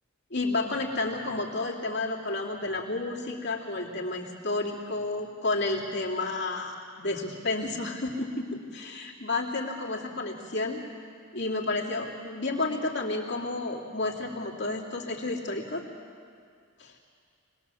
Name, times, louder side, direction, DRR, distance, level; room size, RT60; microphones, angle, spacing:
voice 1, 0.3-10.8 11.3-15.8 16.8-16.9, left 2 dB, 55° left, -2 dB, 2.7 m, -31 dB
25.0 x 20.0 x 7.0 m, 2.2 s
head